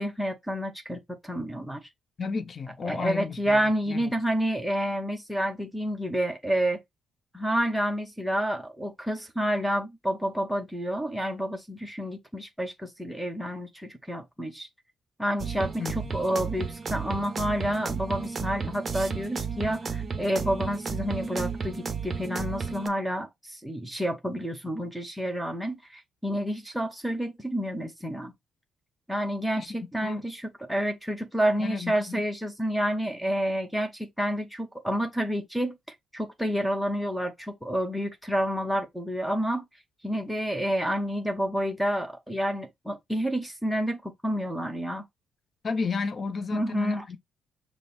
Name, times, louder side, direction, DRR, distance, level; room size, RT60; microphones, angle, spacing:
voice 1, 0.0-1.9 2.8-6.8 7.3-14.7 15.2-28.3 29.1-39.6 40.0-45.0 46.5-47.1, equal, ahead, 0.7 m, -29 dB
voice 2, 2.2-4.1 15.8-16.2 29.6-29.7 30.0-30.2 31.6-32.2 45.6-47.2, left 4 dB, 40° left, 0.6 m, -33 dB
sound 1, 15.4-22.9, right 5 dB, 35° right, 0.6 m, -33 dB
5.1 x 2.0 x 4.0 m
cardioid pair, 90°, 0 cm